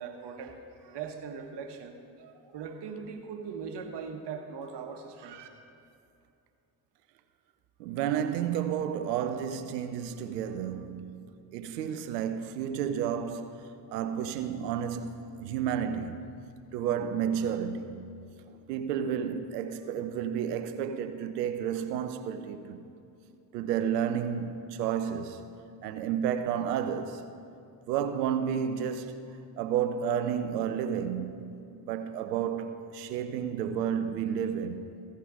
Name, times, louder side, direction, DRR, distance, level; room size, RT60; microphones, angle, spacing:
voice 1, 0.0-5.5, right 6 dB, 60° right, 1.2 m, -40 dB
voice 2, 7.8-11.3 11.5-16.4 16.7-18.0 18.7-22.8 23.5-25.5 25.8-27.3 27.9-34.9, right 8 dB, 85° right, 0.6 m, -31 dB
15.5 x 5.7 x 4.9 m
hypercardioid pair, 45°, 47 cm